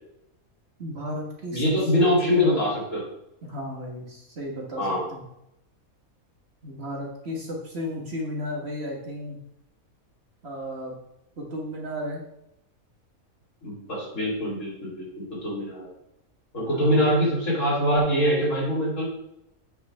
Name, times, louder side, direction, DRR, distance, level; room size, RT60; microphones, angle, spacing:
voice 1, 0.8-1.6 2.0-2.6 3.4-5.2 6.6-9.4 10.4-10.9 11.4-12.2 16.5-17.1, equal, 50° right, -1 dB, 1.6 m, -34 dB
voice 2, 1.5-3.0 4.8-5.0 13.6-15.9 16.5-19.1, equal, 60° left, -5 dB, 3.4 m, -24 dB
8.0 x 5.6 x 3.4 m, 0.81 s
omnidirectional pair, 1.5 m